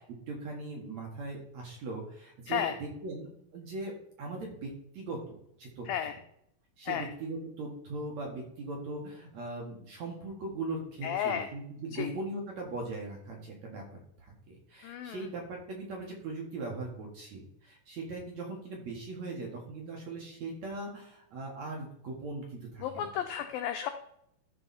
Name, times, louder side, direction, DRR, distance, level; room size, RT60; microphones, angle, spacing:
voice 1, 0.3-3.9 4.2-6.1 6.8-23.1, right 2 dB, 55° right, -1 dB, 2.1 m, -40 dB
voice 2, 5.9-6.2 6.9-7.1 11.0-11.5 11.9-12.1 14.8-15.3 22.8-23.9, left 9 dB, 85° left, 7 dB, 2.0 m, -33 dB
13.5 x 4.7 x 4.2 m, 0.74 s
omnidirectional pair, 4.9 m